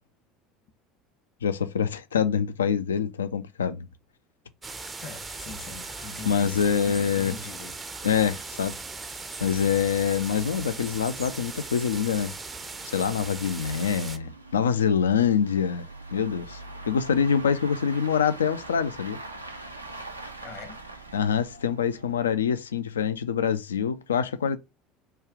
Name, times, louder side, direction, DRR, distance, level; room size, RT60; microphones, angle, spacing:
voice 1, 1.4-3.9 6.2-7.3 8.0-8.8 9.4-12.3 12.8-15.8 16.1-16.6 16.9-19.2 21.1-24.6, left 7 dB, 75° left, 0.3 m, -25 dB
sound 1, 4.6-14.2, right 3 dB, 20° right, 0.4 m, -39 dB
voice 2, 5.0-7.7 20.4-20.8, left 4 dB, 50° left, 0.9 m, -42 dB
sound 2, 8.6-22.5, right 2 dB, 85° right, 0.4 m, -44 dB
3.2 x 2.3 x 3.6 m
figure-of-eight pair, 70°, 0 cm